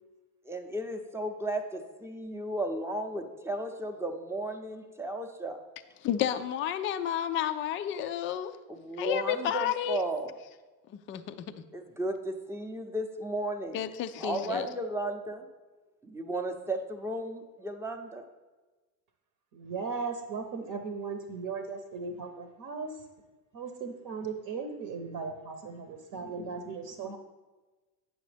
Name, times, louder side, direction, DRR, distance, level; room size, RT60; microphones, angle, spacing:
voice 1, 0.5-5.6 8.7-10.3 11.7-13.8 14.2-15.5 16.0-18.2, right 1 dB, 5° right, 5 dB, 0.7 m, -34 dB
voice 2, 6.0-8.5 9.0-10.0 10.9-11.6 13.7-14.7, left 10 dB, 30° left, 10 dB, 0.3 m, -31 dB
voice 3, 19.5-23.0 23.5-27.2, right 4 dB, 45° right, 6 dB, 0.9 m, -37 dB
8.9 x 6.3 x 3.3 m, 1.2 s
hypercardioid pair, 85°, 48 cm